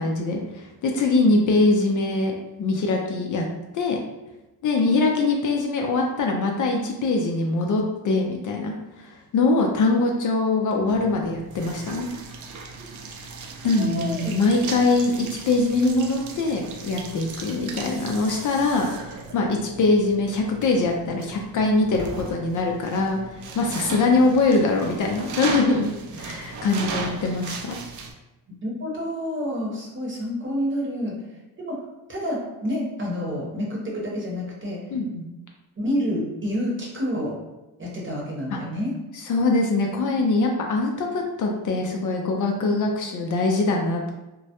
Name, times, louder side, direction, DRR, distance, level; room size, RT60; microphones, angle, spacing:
voice 1, 0.0-3.4 3.7-4.0 4.6-12.1 13.6-25.9 26.2-27.8 34.9-35.2 38.5-38.6 39.3-44.1, left 3 dB, 50° left, 1 dB, 0.4 m, -23 dB
sound 1, 10.9-28.1, right 4 dB, 50° right, 0.5 m, -37 dB
voice 2, 13.6-14.3 28.5-31.2 31.6-31.8 32.1-34.8 35.8-37.4 37.8-39.0, equal, 30° right, -3 dB, 0.8 m, -28 dB
2.2 x 2.0 x 2.8 m, 1.0 s
cardioid pair, 70°, 40 cm